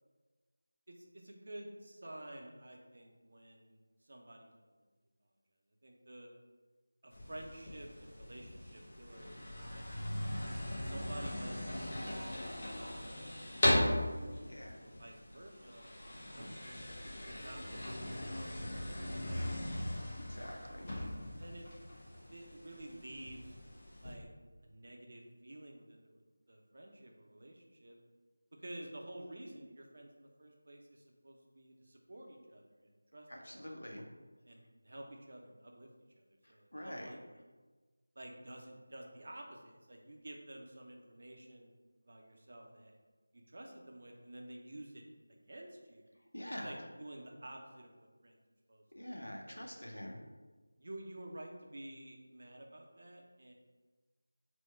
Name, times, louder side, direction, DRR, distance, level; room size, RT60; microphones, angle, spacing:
voice 1, 0.9-4.8 5.8-6.3 7.0-10.1 10.8-14.4 14.8-16.9 17.2-19.5 20.9-21.7 22.3-23.6 24.0-24.3 24.6-26.2 26.5-28.0 28.6-33.7 34.4-35.9 36.2-37.3 38.2-41.7 42.0-42.9 43.3-45.0 45.3-46.0 46.6-48.4 48.7-49.7 50.8-53.5, right 1 dB, 50° right, 1 dB, 0.6 m, -51 dB
sound 1, 7.1-24.1, left 1 dB, 35° left, 0.8 m, -39 dB
voice 2, 14.4-14.8 16.3-16.6 20.2-20.9 33.3-34.0 36.7-37.1 46.3-46.7 48.9-50.2, equal, 75° left, 1 dB, 0.7 m, -45 dB
4.4 x 2.2 x 4.2 m, 1.3 s
figure-of-eight pair, 170°, 0 cm